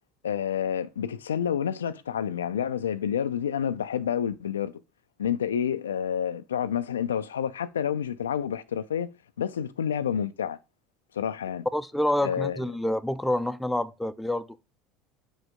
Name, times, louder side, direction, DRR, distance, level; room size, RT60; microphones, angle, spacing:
voice 1, 0.2-4.7 5.2-9.1 9.4-10.6 11.1-11.7 12.2-12.6, left 8 dB, 90° left, 0.3 m, -29 dB
voice 2, 11.7-14.5, left 1 dB, 5° left, 0.5 m, -27 dB
5.2 x 5.1 x 3.5 m
hypercardioid pair, 80°, 0 cm